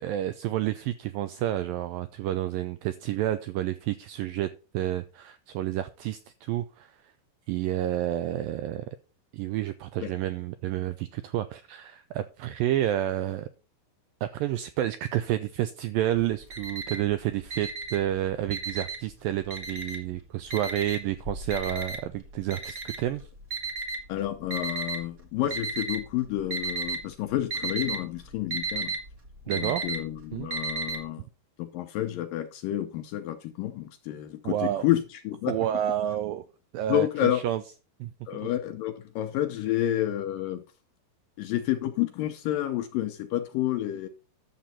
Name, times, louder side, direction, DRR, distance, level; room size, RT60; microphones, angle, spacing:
voice 1, 0.0-7.0 7.5-8.9 9.3-13.5 14.2-23.2 29.5-29.9 30.3-30.5 34.4-34.9 35.5-36.5 36.7-37.6 38.0-38.1, right 12 dB, 85° right, 2.0 m, -30 dB
Alarm, 16.2-17.1 17.5-19.1 19.5-20.1 20.5-25.0 25.5-26.1 26.4-27.0 27.3-31.0, right 3 dB, 45° right, 1.1 m, -33 dB
voice 2, 24.1-28.9 29.5-31.2 31.6-35.5 36.9-37.4 38.3-40.6 41.4-44.1, left 13 dB, 75° left, 2.1 m, -29 dB
11.5 x 7.4 x 4.2 m
omnidirectional pair, 4.7 m